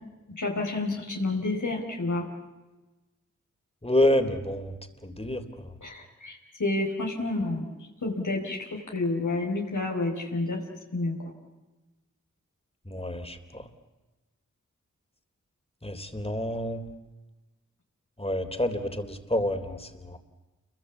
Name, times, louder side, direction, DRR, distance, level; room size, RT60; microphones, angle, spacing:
voice 1, 0.4-2.3 5.8-7.6 8.0-10.6 10.9-11.1, left 2 dB, 80° left, -1 dB, 4.7 m, -29 dB
voice 2, 3.8-4.7 5.0-5.4 12.9-13.6 15.8-16.8 18.2-20.2, left 1 dB, 20° left, 7 dB, 3.5 m, -28 dB
29.5 x 22.5 x 8.5 m, 1.1 s
cardioid pair, 45°, 30 cm